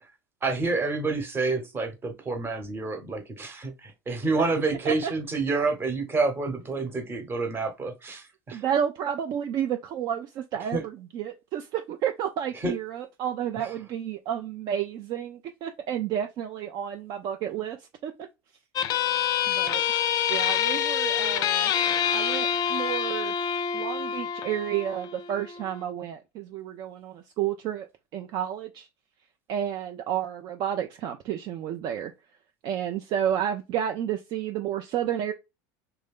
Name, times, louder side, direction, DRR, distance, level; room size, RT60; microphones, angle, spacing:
voice 1, 0.4-8.6 10.7-10.8 12.6-12.7, right 3 dB, 25° right, 1.0 m, -28 dB
voice 2, 8.5-17.8 18.0-18.3 19.5-19.8 20.3-21.7 22.1-23.3 23.7-27.9 28.1-28.9 29.5-32.1 32.6-35.3, right 9 dB, 45° right, 0.5 m, -31 dB
sound 1, 18.8-25.8, left 9 dB, 40° left, 0.5 m, -26 dB
3.3 x 2.6 x 3.5 m
supercardioid pair, 120°, 10 cm